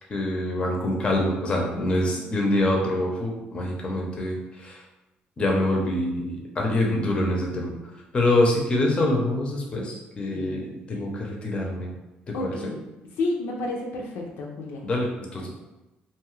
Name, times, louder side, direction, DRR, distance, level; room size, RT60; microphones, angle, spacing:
voice 1, 0.1-4.8 5.4-7.7 8.1-11.9 12.3-12.6 14.8-15.5, left 1 dB, 30° left, -1 dB, 0.6 m, -25 dB
voice 2, 1.7-2.2 10.3-11.0 12.3-12.8 13.2-14.8 15.4-15.5, left 2 dB, 75° left, -1 dB, 0.5 m, -32 dB
2.6 x 2.3 x 3.1 m, 1.0 s
cardioid pair, 115°, 4 cm